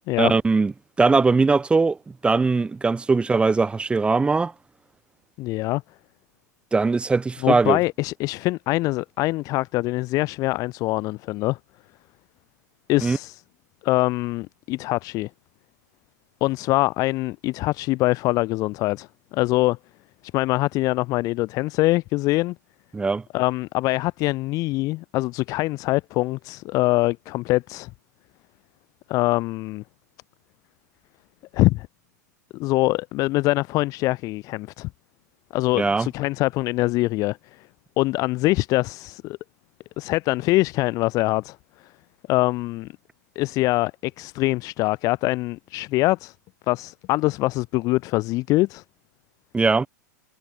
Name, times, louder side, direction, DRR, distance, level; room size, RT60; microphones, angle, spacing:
voice 1, 0.2-0.7 1.0-2.0 2.2-4.5 6.7-7.8 13.0-13.2 22.9-23.2 35.7-36.1 49.5-49.9, right 4 dB, 10° right, 3.2 m, -20 dB
voice 2, 5.4-5.8 7.4-11.6 12.9-13.4 13.8-15.3 16.4-19.8 20.3-22.5 23.3-27.9 29.1-29.8 31.5-31.9 32.5-34.9 35.5-37.6 38.0-39.4 40.0-41.6 42.3-42.9 43.4-46.3 46.7-48.8, left 20 dB, 35° left, 2.2 m, -23 dB
figure-of-eight pair, 100°, 10 cm